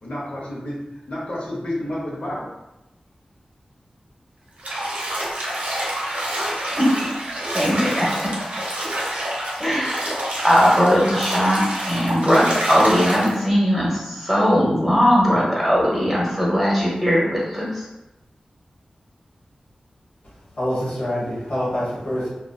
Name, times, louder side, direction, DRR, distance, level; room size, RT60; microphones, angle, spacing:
voice 1, 0.0-2.5, left 1 dB, 60° left, -5 dB, 0.8 m, -30 dB
Bathtub (filling or washing), 4.6-13.4, right 1 dB, 80° right, 0.7 m, -27 dB
voice 2, 7.5-8.3 9.6-17.9, equal, 5° right, -5 dB, 0.7 m, -19 dB
voice 3, 20.6-22.3, equal, 90° left, -8 dB, 1.1 m, -25 dB
2.6 x 2.2 x 2.3 m, 0.94 s
wide cardioid pair, 80°, 2 cm